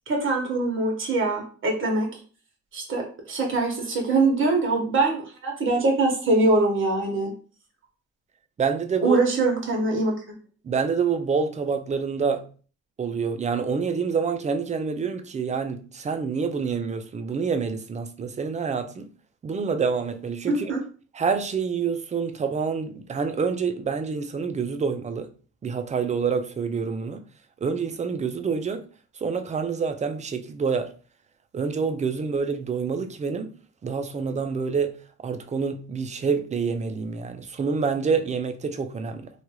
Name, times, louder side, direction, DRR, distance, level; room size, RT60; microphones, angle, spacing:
voice 1, 0.1-2.1 2.7-7.3 9.0-10.1 20.5-20.8, right 2 dB, 40° right, 1.2 m, -23 dB
voice 2, 8.6-9.2 10.6-12.5 13.0-19.1 19.4-20.7 21.2-25.3 25.6-27.2 27.6-28.8 29.2-30.9 31.5-33.5 33.8-35.0 35.2-39.3, right 5 dB, 25° right, 0.3 m, -27 dB
2.8 x 2.3 x 2.9 m
cardioid pair, 90°, 30 cm